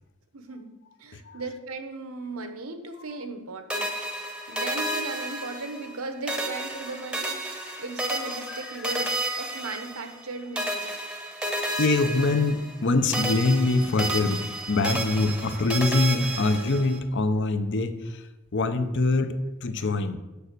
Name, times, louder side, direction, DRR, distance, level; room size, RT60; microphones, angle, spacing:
voice 1, 0.3-3.9 4.5-7.4 7.8-11.0 19.4-19.5, right 3 dB, 70° right, 8 dB, 1.0 m, -37 dB
voice 2, 1.1-1.5 3.9-4.6 6.9-7.0 7.6-7.7 8.5-8.9 11.8-20.2, left 2 dB, 55° left, 10 dB, 0.7 m, -25 dB
sound 1, 3.7-6.0 6.3-10.3 10.6-12.9 13.1-17.0, right 1 dB, 5° right, 0.9 m, -32 dB
6.9 x 6.2 x 6.6 m, 1.0 s
head